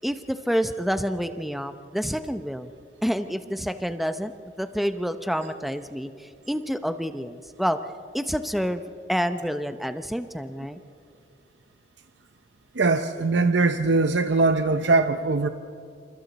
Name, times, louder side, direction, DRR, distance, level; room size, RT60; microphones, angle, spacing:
voice 1, 0.0-2.7 3.0-4.3 4.6-7.8 8.1-8.8 9.1-10.8, equal, ahead, 9 dB, 0.6 m, -28 dB
voice 2, 12.8-15.5, right 3 dB, 70° right, 8 dB, 0.7 m, -21 dB
28.5 x 27.5 x 4.1 m, 2.5 s
head